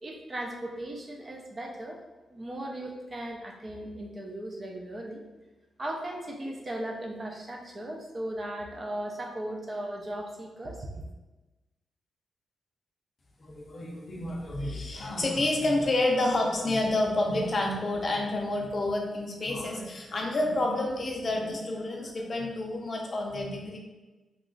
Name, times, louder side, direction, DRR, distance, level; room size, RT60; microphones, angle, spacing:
voice 1, 0.0-2.0 2.3-5.2 5.8-11.0, right 1 dB, 25° right, 1 dB, 0.3 m, -37 dB
voice 2, 13.4-23.8, left 2 dB, 30° left, 0 dB, 0.5 m, -29 dB
2.9 x 2.3 x 3.7 m, 1.1 s
wide cardioid pair, 170°, 0 cm